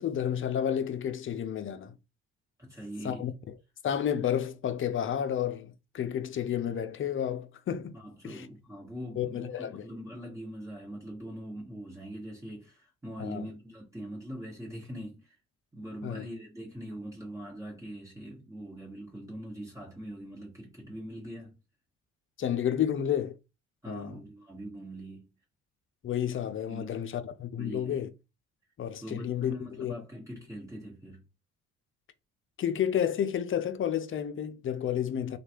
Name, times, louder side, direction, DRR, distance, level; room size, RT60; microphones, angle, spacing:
voice 1, 0.0-1.9 3.0-3.3 3.8-8.0 8.2-8.5 9.2-9.8 13.2-13.5 16.0-16.3 22.4-23.3 23.9-24.1 26.0-28.1 28.8-29.9 32.6-35.4, left 9 dB, 40° left, 0.5 m, -31 dB
voice 2, 2.6-3.3 7.9-15.3 15.7-21.6 23.8-25.3 26.7-26.9 27.6-28.0 29.0-31.2, equal, 10° right, 1.6 m, -42 dB
3.1 x 2.4 x 2.9 m
hypercardioid pair, 55°, 33 cm